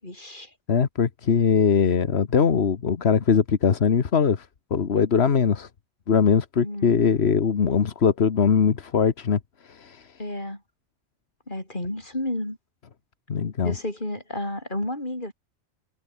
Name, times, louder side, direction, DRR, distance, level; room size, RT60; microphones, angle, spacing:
voice 1, 0.0-0.5 6.6-7.1 10.2-10.6 11.5-12.6 13.6-15.3, left 1 dB, 50° left, 6.2 m, -31 dB
voice 2, 0.7-5.7 6.1-9.4 9.6-10.1 13.3-13.7, left 6 dB, 85° left, 1.5 m, -21 dB
omnidirectional pair, 1.1 m